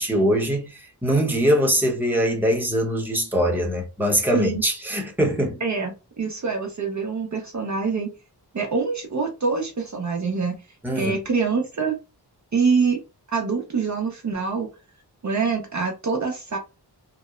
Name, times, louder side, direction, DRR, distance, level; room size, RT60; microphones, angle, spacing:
voice 1, 0.0-5.6 10.8-11.1, equal, 5° right, 0.7 m, -22 dB
voice 2, 4.3-4.6 5.6-8.1 8.5-10.6 11.0-12.0 12.5-13.0 13.3-14.7 15.2-16.6, right 5 dB, 45° right, 0.5 m, -25 dB
2.8 x 2.0 x 2.3 m
wide cardioid pair, 85°, 40 cm